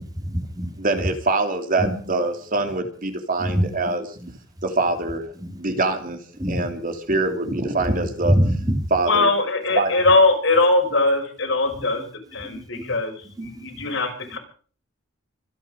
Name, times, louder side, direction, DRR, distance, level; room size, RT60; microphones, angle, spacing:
voice 1, 0.1-0.7 1.8-1.9 3.4-4.3 5.4-5.6 6.4-6.7 7.3-7.4 7.8-8.9 11.7-12.1 12.4-13.0 13.2-14.0 14.3-14.4, equal, 20° right, 5 dB, 2.8 m, -26 dB
voice 2, 0.8-4.0 4.6-5.3 5.6-6.2 6.5-8.3 8.9-9.3 9.7-9.9, right 2 dB, 45° right, 6 dB, 3.0 m, -24 dB
voice 3, 9.1-12.1 12.3-14.4, left 2 dB, 70° left, 3 dB, 5.8 m, -21 dB
25.5 x 10.5 x 5.2 m, 0.43 s
head